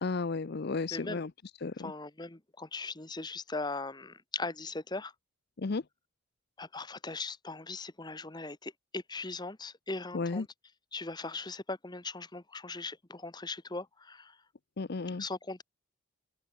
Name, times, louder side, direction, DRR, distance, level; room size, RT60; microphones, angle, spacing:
voice 1, 0.0-1.3 1.6-1.9 5.6-5.8 10.1-10.5 14.8-15.2, left 3 dB, 50° left, 0.6 m, -33 dB
voice 2, 0.9-1.2 1.8-5.1 6.6-10.5 10.9-14.4 15.2-15.6, left 3 dB, 20° left, 1.1 m, -39 dB
open air
head